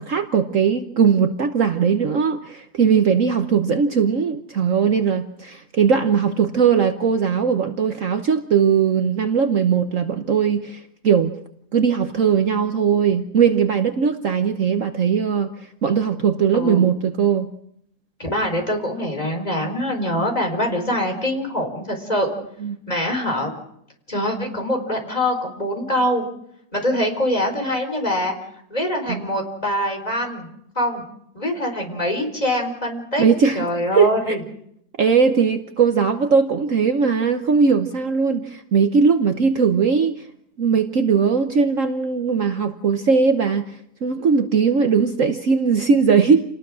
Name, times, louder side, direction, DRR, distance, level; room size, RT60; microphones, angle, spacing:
voice 1, 0.0-11.3 11.7-15.5 15.8-17.5 22.6-22.8 29.1-29.2 33.2-33.7 33.9-34.4 35.0-40.2 40.6-43.8 44.0-46.4, right 6 dB, 55° right, 7 dB, 1.3 m, -19 dB
voice 2, 16.5-16.8 18.2-22.3 22.9-23.5 24.1-26.2 26.7-28.3 28.7-30.5 30.7-31.0 31.3-33.2 33.5-34.4, left 1 dB, 25° left, 3 dB, 4.5 m, -24 dB
28.5 x 19.5 x 6.3 m, 0.75 s
omnidirectional pair, 1.7 m